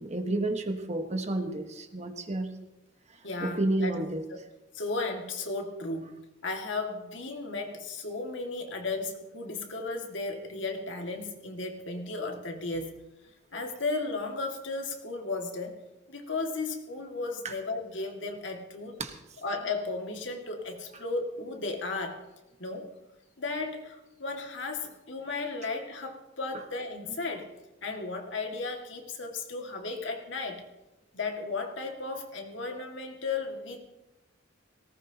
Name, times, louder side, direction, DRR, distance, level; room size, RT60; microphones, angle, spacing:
voice 1, 0.0-2.5 3.4-4.2 17.4-17.6 19.0-19.2, right 2 dB, 35° right, 5 dB, 1.4 m, -30 dB
voice 2, 3.2-3.9 4.3-4.4 4.7-6.2 6.4-13.0 13.5-15.8 16.1-19.0 19.4-22.2 22.6-22.9 23.4-27.5 27.8-30.7 31.1-33.8, left 3 dB, 75° left, 2 dB, 2.2 m, -35 dB
18.5 x 18.5 x 2.9 m, 1.0 s
head